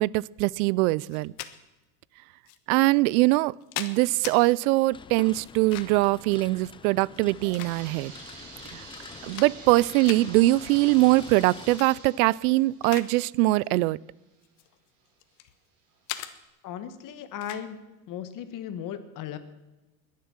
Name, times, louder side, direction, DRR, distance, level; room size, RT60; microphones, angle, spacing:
voice 1, 0.0-1.3 2.7-8.1 8.7-8.8 9.3-14.0, right 20 dB, 70° right, 25 dB, 0.5 m, -22 dB
sound 1, 1.1-1.5 2.5-2.6 3.3-4.4 5.4-6.1 7.1-8.1 8.7-8.8 9.1-9.8 10.0-10.2 11.6-11.9 12.3-13.1 13.4-13.7 14.4-15.5 16.1-16.3 17.4-17.7, left 14 dB, 65° left, 1.3 m, -39 dB
sound 2, 4.9-11.8, left 6 dB, 10° left, 0.4 m, -46 dB
sound 3, 7.1-14.6 15.1-15.2 15.9-16.0 16.4-16.5, right 4 dB, 45° right, 4.9 m, -48 dB
voice 2, 16.6-17.8 18.1-19.4, left 9 dB, 45° left, 11 dB, 1.6 m, -36 dB
21.0 x 7.6 x 7.3 m, 1.1 s
supercardioid pair, 125°, 45 cm